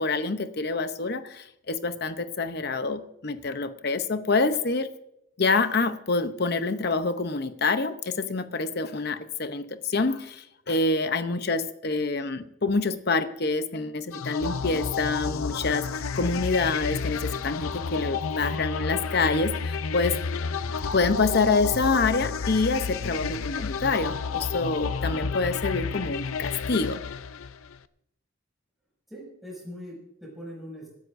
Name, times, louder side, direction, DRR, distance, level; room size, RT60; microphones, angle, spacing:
voice 1, 0.0-4.9 5.4-20.2 20.9-27.0, left 3 dB, 50° left, 10 dB, 0.8 m, -26 dB
sound 1, 14.1-27.8, left 5 dB, 85° left, 0.6 m, -31 dB
voice 2, 29.1-30.9, equal, ahead, -4 dB, 6.6 m, -41 dB
25.5 x 13.0 x 2.6 m, 0.78 s
head